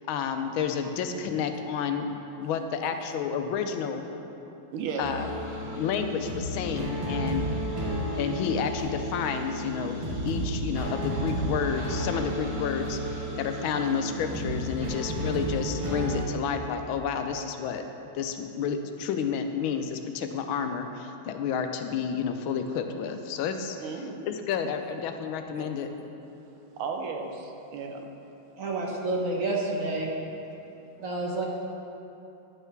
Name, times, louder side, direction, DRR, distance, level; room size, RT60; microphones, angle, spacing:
voice 1, 0.1-4.1 5.0-5.3 5.8-7.5 8.2-17.8 18.1-25.9, left 7 dB, 80° left, 6 dB, 1.4 m, -30 dB
voice 2, 4.7-5.1 23.8-24.3 25.6-25.7 26.8-28.1, right 5 dB, 85° right, 3 dB, 1.6 m, -35 dB
sound 1, 5.0-16.2, equal, 30° right, 0.6 m, -32 dB
voice 3, 28.6-30.1 31.0-31.4, right 2 dB, 50° right, -2 dB, 1.1 m, -29 dB
11.0 x 5.6 x 4.5 m, 2.9 s
omnidirectional pair, 2.3 m